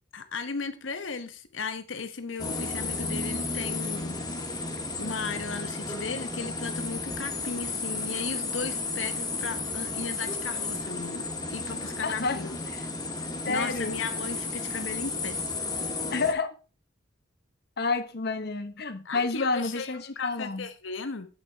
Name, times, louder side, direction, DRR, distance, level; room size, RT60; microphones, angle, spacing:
voice 1, 0.1-4.2 5.0-12.5 13.5-15.4 19.0-21.3, left 4 dB, 75° left, 1.0 m, -36 dB
sound 1, 2.4-16.3, left 3 dB, 20° left, 1.3 m, -33 dB
voice 2, 12.0-12.4 12.7-12.8 13.4-13.9 16.1-16.5 17.8-20.7, left 4 dB, 55° left, 0.9 m, -29 dB
8.3 x 8.1 x 3.4 m
head